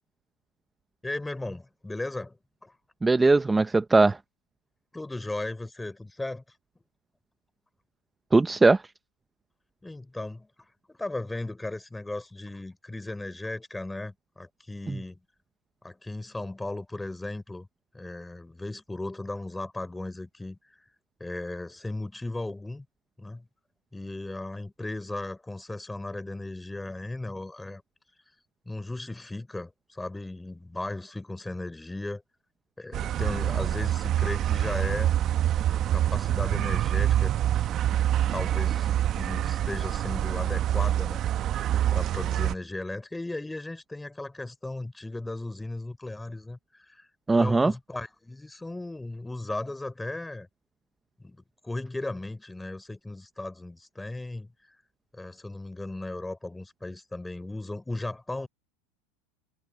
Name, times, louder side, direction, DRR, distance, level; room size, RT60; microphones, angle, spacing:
voice 1, 1.0-2.4 2.6-2.7 4.9-6.4 9.8-10.5 10.9-15.2 15.8-17.7 17.9-20.6 21.2-22.8 23.2-23.4 23.9-27.8 28.6-32.2 32.8-35.1 35.6-37.4 38.3-41.2 41.9-47.1 47.3-50.5 51.2-54.5 55.1-58.5, left 2 dB, 10° left, 4.9 m, -36 dB
voice 2, 3.0-4.2 8.3-8.8 14.9-15.0 47.3-47.7, right 3 dB, 10° right, 0.9 m, -20 dB
sound 1, 32.9-42.5, right 11 dB, 40° right, 1.4 m, -26 dB
hypercardioid pair, 110°, 0 cm